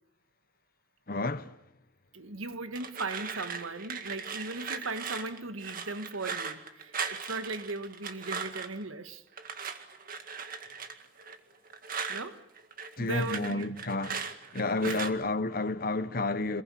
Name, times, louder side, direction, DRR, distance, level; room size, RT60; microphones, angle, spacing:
voice 1, 1.1-1.6 13.0-14.3 14.5-16.6, left 2 dB, 45° left, 1.1 m, -31 dB
voice 2, 2.1-9.2 12.1-12.4 13.0-13.7 14.8-15.0, right 3 dB, 85° right, 1.8 m, -38 dB
sound 1, 2.7-8.8 9.4-12.2 12.6-15.1, right 5 dB, 45° right, 2.1 m, -38 dB
27.5 x 21.5 x 8.6 m
head